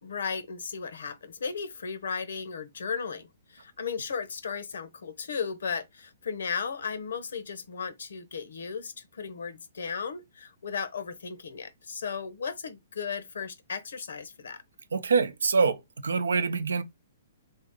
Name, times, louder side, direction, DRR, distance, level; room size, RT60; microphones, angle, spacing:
voice 1, 0.0-14.6, left 6 dB, 80° left, 0.8 m, -35 dB
voice 2, 14.9-16.8, right 5 dB, 90° right, 0.6 m, -25 dB
3.5 x 2.8 x 3.6 m
hypercardioid pair, 145°, 0 cm